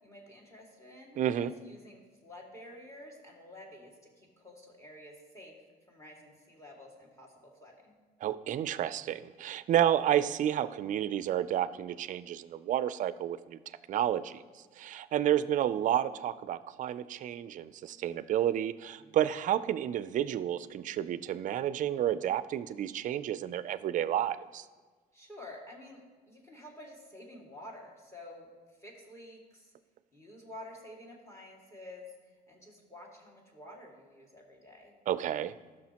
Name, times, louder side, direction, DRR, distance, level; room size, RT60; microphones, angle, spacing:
voice 1, 0.0-5.6 5.9-8.0 19.0-19.3 25.1-28.5 28.8-29.7 30.1-34.9, left 1 dB, 15° left, -1 dB, 2.1 m, -50 dB
voice 2, 1.2-1.5 8.2-13.6 13.9-14.4 14.8-24.6 35.1-35.5, right 11 dB, 50° right, 15 dB, 0.4 m, -30 dB
14.5 x 6.3 x 2.9 m, 1.4 s
cardioid pair, 110°, 17 cm